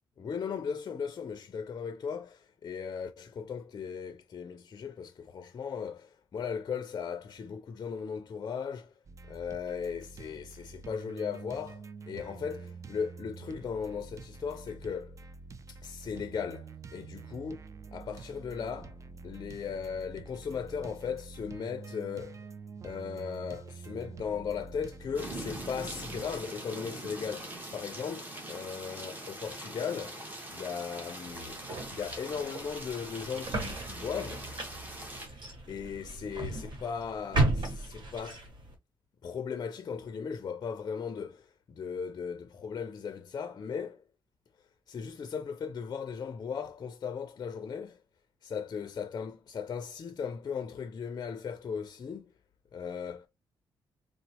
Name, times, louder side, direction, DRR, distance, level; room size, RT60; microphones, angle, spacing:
voice 1, 0.2-8.9 9.3-15.2 15.7-18.9 19.2-22.4 22.8-30.2 30.5-31.6 31.9-34.5 35.7-38.5 39.2-44.0 44.9-48.0 48.4-52.3 52.7-53.2, left 6 dB, 45° left, 0.4 m, -37 dB
sound 1, 9.0-26.4, right 4 dB, 35° right, 0.4 m, -47 dB
sound 2, 25.1-35.3, right 1 dB, 20° right, 1.0 m, -42 dB
sound 3, 31.3-38.7, right 2 dB, 60° right, 1.3 m, -35 dB
3.9 x 2.0 x 2.8 m
cardioid pair, 90°, 9 cm